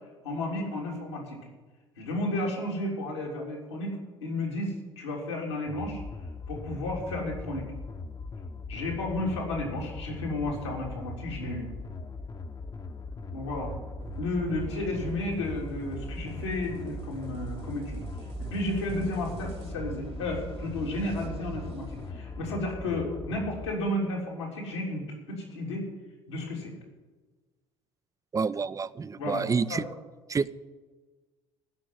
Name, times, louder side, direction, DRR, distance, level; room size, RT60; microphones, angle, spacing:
voice 1, 0.2-1.4 2.0-6.0 6.5-7.7 8.7-11.7 13.3-13.7 14.2-18.0 18.4-25.9 26.3-26.7 29.2-29.4 29.7-29.9, left 1 dB, 85° left, -2 dB, 3.5 m, -32 dB
sound 1, 5.7-23.7, left 4 dB, 30° left, 1.1 m, -40 dB
sound 2, 13.4-22.1, right 7 dB, 45° right, 1.7 m, -42 dB
voice 2, 28.3-29.8 30.3-30.5, right 5 dB, 25° right, 17 dB, 0.6 m, -28 dB
15.0 x 6.2 x 9.7 m, 1.3 s
hypercardioid pair, 60°, 14 cm